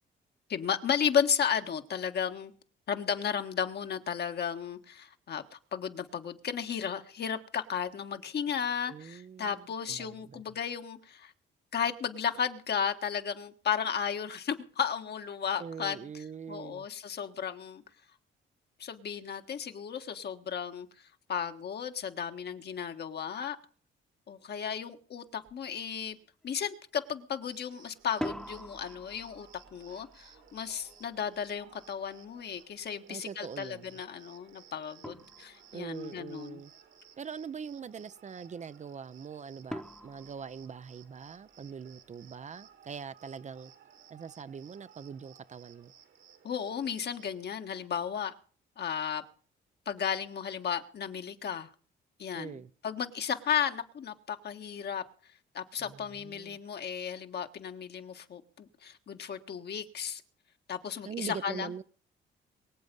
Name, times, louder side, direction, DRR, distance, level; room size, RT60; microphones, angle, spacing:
voice 1, 0.5-2.5 2.9-11.3 11.7-16.0 16.5-17.8 18.8-20.9 21.3-23.6 24.3-26.2 26.4-36.6 46.4-48.3 48.8-49.2 49.8-51.7 52.2-55.0 55.5-60.2 60.7-61.7, left 7 dB, 55° left, 1.6 m, -34 dB
voice 2, 8.9-10.6 15.6-16.9 33.1-34.0 35.7-36.7 37.2-43.7 44.1-45.9 52.3-52.7 55.8-56.6 61.0-61.8, right 6 dB, 35° right, 0.6 m, -43 dB
sound 1, 25.5-25.6 26.0-26.5 28.0-32.9 34.5-34.6 35.0-36.0 39.7-41.4, equal, 5° left, 1.0 m, -44 dB
Cricket, 27.5-47.4, right 8 dB, 75° right, 2.4 m, -58 dB
23.0 x 7.9 x 5.4 m
cardioid pair, 90°, 20 cm